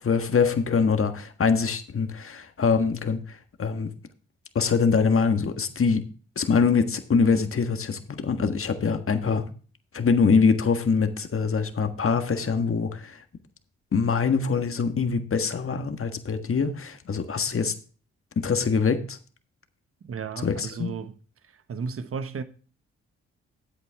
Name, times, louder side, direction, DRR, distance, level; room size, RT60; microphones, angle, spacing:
voice 1, 0.0-3.9 4.5-6.1 6.3-9.5 9.9-13.2 13.9-17.7 18.3-19.2 20.4-20.9, left 5 dB, 45° left, 1.5 m, -24 dB
voice 2, 20.0-21.1 21.4-22.4, right 5 dB, 45° right, 1.1 m, -34 dB
10.0 x 8.3 x 3.5 m
supercardioid pair, 45°, 31 cm